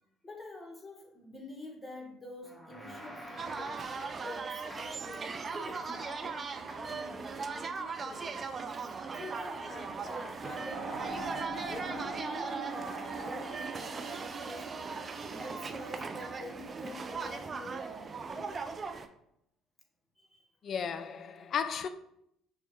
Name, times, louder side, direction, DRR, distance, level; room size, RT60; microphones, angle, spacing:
voice 1, 0.2-3.9 4.2-11.2 11.5-14.9 15.4-18.7 20.2-20.5 21.4-21.5, left 1 dB, 20° left, 1.0 m, -47 dB
sound 1, 2.4-4.4 4.7-5.1 5.5-6.1 6.7-7.1, equal, 5° right, 0.8 m, -49 dB
sound 2, 3.4-19.1, right 4 dB, 35° right, 0.3 m, -39 dB
sound 3, 10.7-16.8, right 3 dB, 50° right, 0.8 m, -42 dB
voice 2, 20.6-21.9, left 7 dB, 45° left, 0.3 m, -34 dB
6.0 x 2.1 x 3.0 m
figure-of-eight pair, 55°, 0 cm